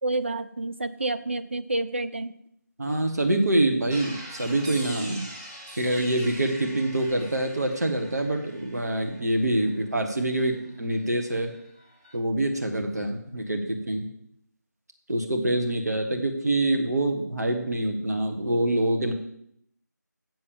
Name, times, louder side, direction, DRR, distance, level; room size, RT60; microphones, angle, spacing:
voice 1, 0.0-2.3, right 2 dB, 40° right, 10 dB, 0.4 m, -29 dB
voice 2, 2.8-5.3 5.8-11.5 12.1-14.1 15.1-19.1, right 1 dB, 60° right, 4 dB, 1.4 m, -25 dB
sound 1, 3.9-11.1 11.3-12.2, equal, 15° right, 0.8 m, -44 dB
7.5 x 6.4 x 7.2 m, 0.73 s
figure-of-eight pair, 170°, 10 cm